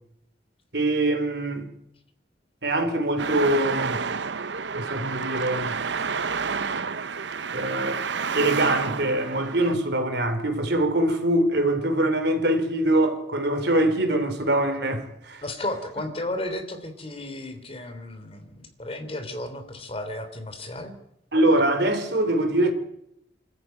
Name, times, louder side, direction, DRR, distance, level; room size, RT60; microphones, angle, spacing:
voice 1, 0.7-1.7 2.6-4.0 4.7-5.8 7.5-8.0 8.3-15.4 21.3-22.7, right 1 dB, 65° right, 3.5 m, -23 dB
Traffic noise roadway noise, 3.2-9.7, right 5 dB, 80° right, 0.8 m, -29 dB
voice 2, 15.4-21.0, left 1 dB, 35° left, 3.3 m, -33 dB
26.0 x 14.0 x 9.1 m
head